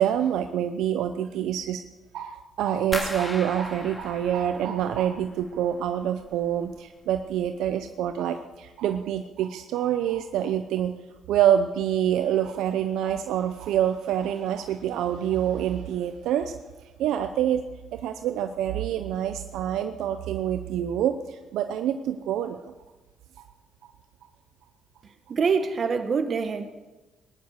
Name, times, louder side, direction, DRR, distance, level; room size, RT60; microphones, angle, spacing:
voice 1, 0.0-1.8 2.1-10.9 11.3-16.6 17.0-17.6 17.9-22.7 23.8-23.9, right 10 dB, 85° right, 8 dB, 0.7 m, -26 dB
sound 1, 2.9-5.8 6.1-6.8 7.1-7.6 8.0-8.1, left 1 dB, 15° left, 2.3 m, -37 dB
voice 2, 25.3-26.7, right 5 dB, 50° right, 8 dB, 1.6 m, -25 dB
19.0 x 11.0 x 6.7 m, 1.2 s
cardioid pair, 90°, 0 cm